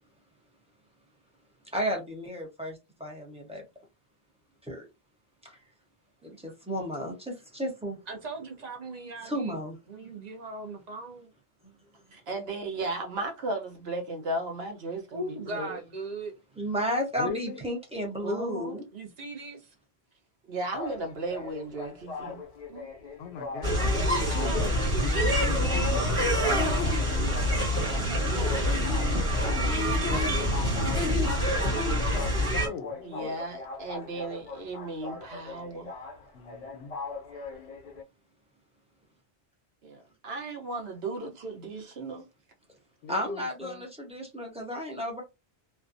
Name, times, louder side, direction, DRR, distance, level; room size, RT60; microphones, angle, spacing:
voice 1, 1.7-3.6 4.6-4.9 5.4-5.6 6.2-8.0 9.2-10.1 16.6-18.8 43.1-45.2, equal, 5° right, 0.6 m, -33 dB
voice 2, 8.1-9.6 9.9-11.3 15.1-16.4 18.9-19.7 24.1-25.5 26.4-27.2 28.2-28.8, right 2 dB, 45° right, 0.6 m, -39 dB
voice 3, 12.1-15.8 18.2-18.7 20.5-22.4 22.7-22.9 33.0-35.9 39.8-42.2, right 2 dB, 65° right, 1.0 m, -35 dB
voice 4, 17.2-17.6 23.2-24.2 24.5-24.7 25.2-26.4 29.9-33.3 36.3-37.0 43.0-43.9, left 6 dB, 70° left, 0.8 m, -40 dB
sound 1, 20.7-38.0, left 4 dB, 45° left, 0.5 m, -41 dB
sound 2, 23.6-32.7, equal, 30° right, 1.2 m, -26 dB
2.5 x 2.2 x 2.5 m
omnidirectional pair, 1.1 m